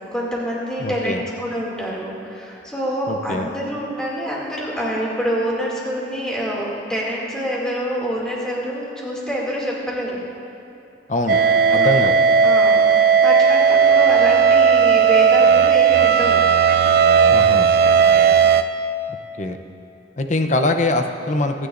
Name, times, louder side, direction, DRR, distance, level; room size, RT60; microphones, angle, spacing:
voice 1, 0.1-10.2 11.7-12.0 12.4-16.4 17.9-18.2, equal, 5° left, -5 dB, 2.4 m, -26 dB
voice 2, 0.8-1.2 3.1-3.5 11.1-11.4 11.7-12.1 17.3-17.7 19.4-19.6 20.2-21.7, left 1 dB, 40° left, 6 dB, 0.7 m, -22 dB
sound 1, 11.3-18.6, right 6 dB, 55° right, 0.4 m, -15 dB
23.0 x 9.9 x 2.6 m, 2.8 s
head